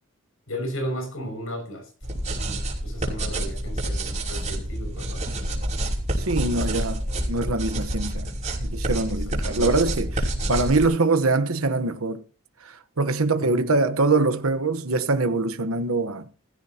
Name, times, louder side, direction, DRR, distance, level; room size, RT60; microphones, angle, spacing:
voice 1, 0.5-1.9 2.3-5.2 9.6-9.7 13.3-13.6, equal, 75° left, 6.4 m, -34 dB
sound 1, 2.0-10.9, right 1 dB, 35° right, 5.6 m, -28 dB
voice 2, 6.2-8.3 8.6-12.2 12.6-16.3, right 3 dB, 90° right, 1.2 m, -24 dB
17.5 x 15.5 x 3.0 m
head